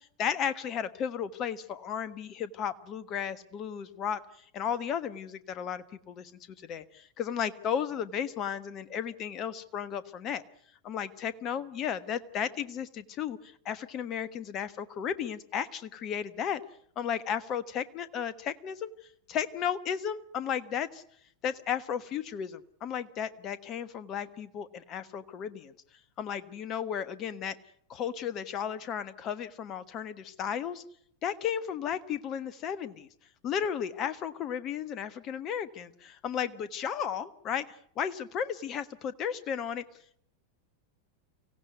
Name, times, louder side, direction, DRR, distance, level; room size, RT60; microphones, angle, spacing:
voice 1, 0.0-4.2 4.5-6.3 6.7-10.4 10.8-16.6 17.0-18.9 19.3-21.0 21.4-25.7 26.2-27.6 27.9-30.8 31.2-33.1 33.4-37.7 38.0-39.8, left 8 dB, 35° left, 15 dB, 1.3 m, -34 dB
24.5 x 16.5 x 9.4 m, 0.69 s
figure-of-eight pair, 90°, 0 cm